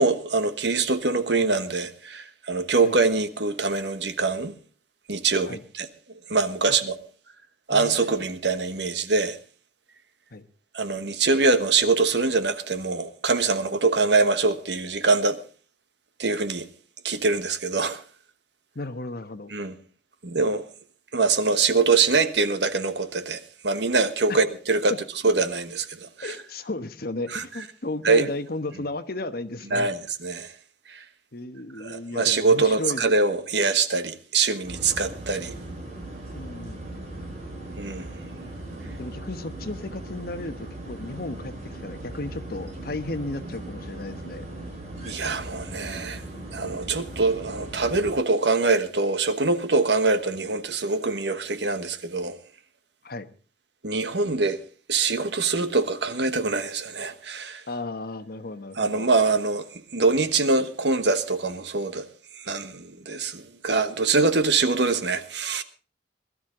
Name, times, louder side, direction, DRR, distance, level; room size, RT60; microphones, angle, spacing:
voice 1, 0.0-4.5 5.1-5.9 6.3-7.0 7.7-9.4 10.7-15.4 16.2-16.7 17.0-18.0 19.5-19.7 20.2-20.6 21.1-24.9 25.2-26.3 27.3-27.4 28.0-28.3 29.7-30.5 30.9-31.0 31.8-35.5 37.8-38.1 45.0-46.2 46.5-52.4 53.8-54.6 54.9-57.6 58.8-59.7 59.9-62.0 62.4-65.6, right 3 dB, 75° right, 1.3 m, -24 dB
voice 2, 18.7-19.5 24.3-24.4 26.2-29.9 31.3-33.0 36.3-37.2 38.8-44.4 53.0-53.3 57.7-59.1, left 2 dB, 60° left, 1.2 m, -34 dB
sound 1, 34.6-48.1, right 1 dB, 40° right, 4.7 m, -38 dB
21.0 x 12.5 x 3.8 m
head